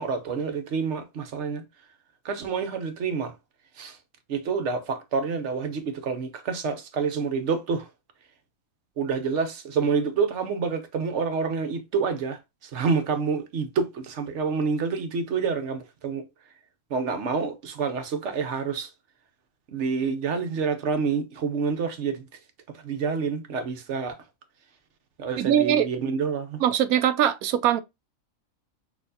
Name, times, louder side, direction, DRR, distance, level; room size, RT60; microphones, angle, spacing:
voice 1, 0.0-1.6 2.2-3.3 3.8-4.0 4.3-7.9 9.0-16.2 16.9-18.9 19.7-22.3 22.7-24.2 25.2-26.6, right 5 dB, 60° right, 1.0 m, -28 dB
voice 2, 25.4-25.9 26.6-27.8, right 10 dB, 85° right, 1.0 m, -21 dB
6.5 x 2.8 x 2.6 m
omnidirectional pair, 1.5 m